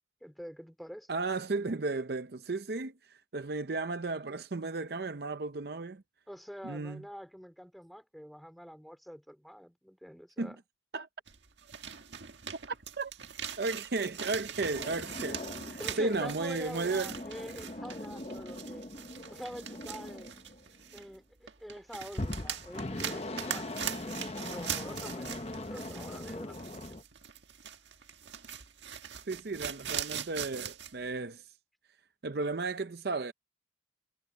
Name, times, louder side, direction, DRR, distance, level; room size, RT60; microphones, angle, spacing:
voice 1, 0.2-1.1 6.3-10.6 15.8-18.9 19.3-20.3 20.9-26.9, equal, ahead, 4.7 m, -46 dB
voice 2, 1.1-6.0 6.6-7.0 10.4-10.5 10.9-11.1 13.0-13.1 13.6-17.1 29.3-31.5 32.2-33.3, right 3 dB, 55° right, 0.6 m, -34 dB
sound 1, 11.3-21.2 21.5-30.9, right 9 dB, 70° right, 1.7 m, -42 dB
sound 2, 14.7-21.1 22.1-27.0, left 1 dB, 35° left, 0.9 m, -41 dB
head